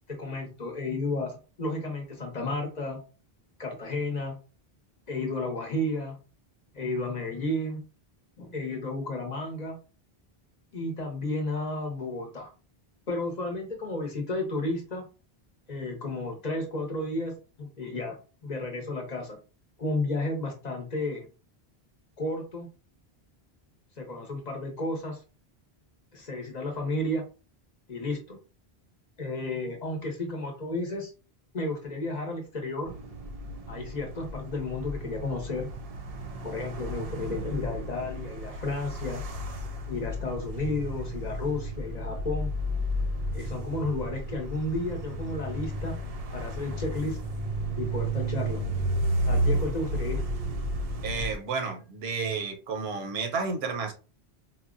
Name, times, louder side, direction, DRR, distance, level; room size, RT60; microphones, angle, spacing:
voice 1, 0.1-3.0 3.6-4.4 5.1-6.2 6.7-7.8 8.4-9.8 10.7-12.5 13.1-15.0 15.7-19.4 19.8-21.3 22.2-22.7 24.0-25.2 26.1-27.2 27.9-28.4 29.2-31.1 31.5-32.9 33.7-35.7 36.4-39.2 39.9-42.5 43.3-46.0 46.3-47.2 47.8-48.6 49.3-50.2, left 2 dB, 45° left, 0.8 m, -32 dB
sound 1, 32.9-51.3, right 1 dB, 55° right, 0.4 m, -32 dB
voice 2, 51.0-53.9, right 4 dB, 80° right, 0.9 m, -31 dB
4.1 x 2.0 x 2.4 m
omnidirectional pair, 1.0 m